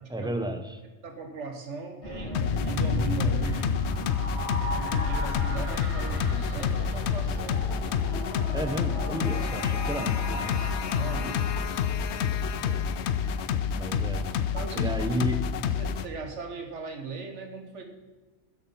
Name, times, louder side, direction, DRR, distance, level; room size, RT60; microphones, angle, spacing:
voice 1, 0.1-0.8 8.5-10.8 12.6-12.9 13.8-14.3 14.7-15.6, right 1 dB, 5° right, 7 dB, 0.8 m, -33 dB
voice 2, 1.0-3.7 4.7-7.7 10.9-11.5 14.5-14.9 15.6-17.8, right 4 dB, 80° right, 4 dB, 1.7 m, -38 dB
sound 1, 2.0-12.4, left 1 dB, 30° left, 2.9 m, -34 dB
sound 2, 2.3-16.1, left 7 dB, 70° left, 0.9 m, -29 dB
10.0 x 8.7 x 5.6 m, 1.2 s
omnidirectional pair, 1.2 m